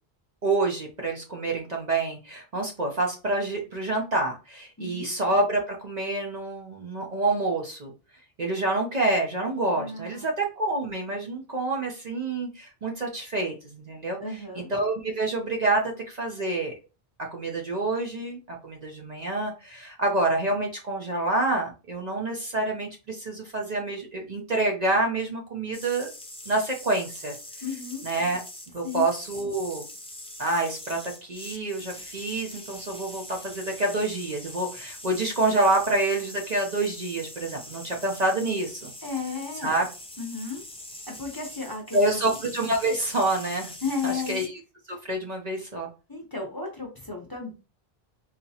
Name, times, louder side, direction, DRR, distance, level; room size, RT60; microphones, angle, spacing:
voice 1, 0.4-7.9 8.4-14.2 14.7-16.7 17.2-26.1 26.5-27.3 28.0-28.4 28.7-29.8 30.4-38.9 39.6-39.9 41.9-43.7 44.0-44.6 44.9-45.9, right 2 dB, 45° right, 1 dB, 0.7 m, -27 dB
voice 2, 4.8-5.1 9.7-10.3 14.2-14.7 27.6-28.1 28.8-29.1 39.0-39.8 40.2-40.6 41.1-42.4 43.8-44.4 46.1-47.5, left 4 dB, 25° left, 0 dB, 0.8 m, -34 dB
sound 1, 25.7-44.5, left 1 dB, 10° left, 0.4 m, -43 dB
4.0 x 2.9 x 2.7 m, 0.31 s
omnidirectional pair, 1.1 m